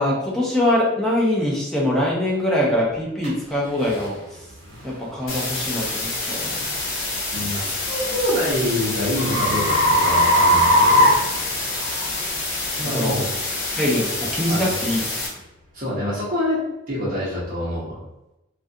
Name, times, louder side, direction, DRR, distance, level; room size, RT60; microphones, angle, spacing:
voice 1, 0.0-4.4 4.8-6.7 12.1-12.2 12.8-13.2 13.8-15.0, left 1 dB, ahead, -5 dB, 0.5 m, -23 dB
sound 1, 3.2-3.3 3.9-4.1 4.7-4.9 7.5-12.0, equal, 75° right, 0.9 m, -19 dB
sound 2, 5.3-15.3, left 2 dB, 85° left, 0.7 m, -27 dB
voice 2, 7.3-11.2 12.8-13.3 14.5-14.7 15.7-16.6 16.9-18.0, left 1 dB, 45° right, -8 dB, 0.8 m, -26 dB
2.3 x 2.3 x 2.6 m, 0.93 s
head